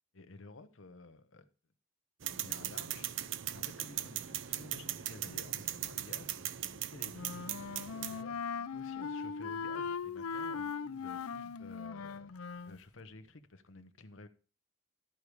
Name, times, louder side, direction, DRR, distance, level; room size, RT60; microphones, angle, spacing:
voice 1, 0.1-1.5 2.3-7.4 8.1-8.4 8.7-12.3 12.6-14.3, left 2 dB, 60° left, 1.0 m, -53 dB
sound 1, 2.2-8.2, right 12 dB, 60° right, 0.5 m, -39 dB
Telephone, 5.3-13.4, equal, 35° right, 1.1 m, -67 dB
Wind instrument woodwind instrument, 7.1-12.8, left 5 dB, 85° left, 0.6 m, -39 dB
12.5 x 4.9 x 6.8 m
head